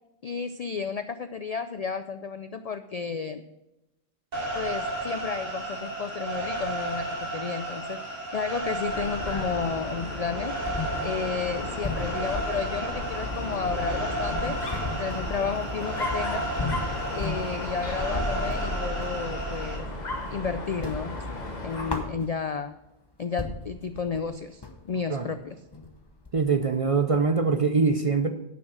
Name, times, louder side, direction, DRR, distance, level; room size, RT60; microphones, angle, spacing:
voice 1, 0.2-3.4 4.5-10.6 11.0-14.6 15.0-16.5 17.1-19.9 20.3-21.1 21.6-22.7 23.2-25.6, left 5 dB, 70° left, 10 dB, 0.3 m, -32 dB
sound 1, 4.3-19.8, right 2 dB, 90° right, 3.7 m, -33 dB
sound 2, 8.7-9.9 10.2-10.3 10.6-19.2 19.6-20.4 20.7-22.7 23.1-23.2 23.4-27.5, left 2 dB, 20° left, 0.9 m, -37 dB
Dog, 8.8-22.1, left 2 dB, 40° left, 1.3 m, -34 dB
voice 2, 26.3-28.3, right 4 dB, 45° right, 7 dB, 0.5 m, -23 dB
10.5 x 6.2 x 6.2 m, 0.93 s
omnidirectional pair, 1.2 m